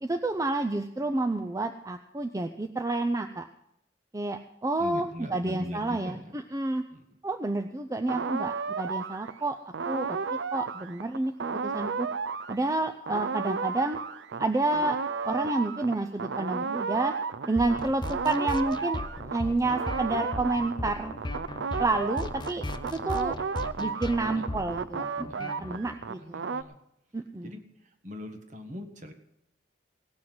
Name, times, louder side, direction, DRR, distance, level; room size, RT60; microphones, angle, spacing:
voice 1, 0.0-3.5 4.1-6.8 7.2-9.6 9.9-10.2 10.5-12.1 12.5-14.0 14.4-17.1 17.4-19.0 19.3-21.1 21.8-22.6 22.9-23.4 23.8-26.5 27.1-27.6, right 2 dB, 20° right, 5 dB, 0.5 m, -29 dB
voice 2, 4.8-6.4 6.9-7.0 24.2-24.4 25.2-26.8 27.4-27.6 28.0-29.1, equal, 45° right, 6 dB, 1.6 m, -41 dB
sound 1, 8.1-19.4 19.7-26.6, right 5 dB, 90° right, 0.5 m, -33 dB
sound 2, 17.6-25.9, left 2 dB, 25° left, 0.6 m, -37 dB
18.0 x 6.3 x 7.7 m, 0.82 s
head